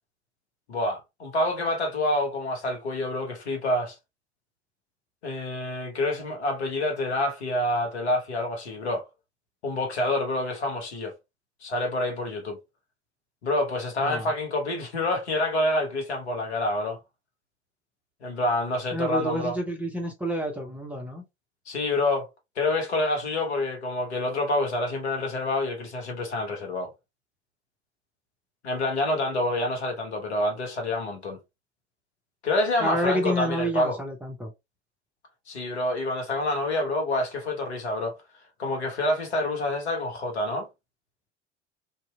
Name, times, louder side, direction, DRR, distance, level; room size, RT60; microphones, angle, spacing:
voice 1, 0.7-4.0 5.2-9.1 9.6-11.1 11.6-12.6 13.4-17.0 18.2-19.6 21.7-22.3 22.6-26.9 28.6-31.4 32.4-34.0 35.5-38.2 38.6-40.7, left 1 dB, 70° left, 1.1 m, -27 dB
voice 2, 18.9-21.2 32.8-34.5, equal, 5° right, 0.5 m, -29 dB
2.7 x 2.5 x 2.2 m
figure-of-eight pair, 75°, 34 cm